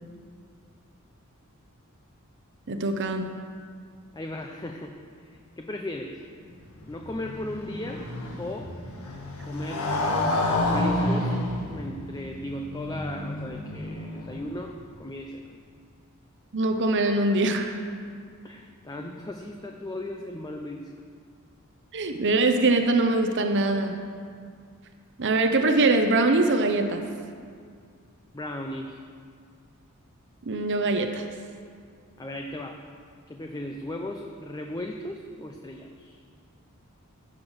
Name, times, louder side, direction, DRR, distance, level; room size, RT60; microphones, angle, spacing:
voice 1, 2.7-3.2 16.5-17.8 21.9-24.0 25.2-27.0 30.5-31.3, right 2 dB, 55° right, 6 dB, 0.8 m, -23 dB
voice 2, 4.1-6.2 6.9-8.1 8.4-8.8 9.4-9.9 10.6-11.3 11.7-15.4 18.4-20.9 28.3-29.0 32.2-32.8 33.3-36.2, left 1 dB, 20° left, 3 dB, 0.6 m, -36 dB
Motorcycle, 6.5-14.6, left 1 dB, 80° left, 1.8 m, -30 dB
16.0 x 6.9 x 6.4 m, 2.2 s
head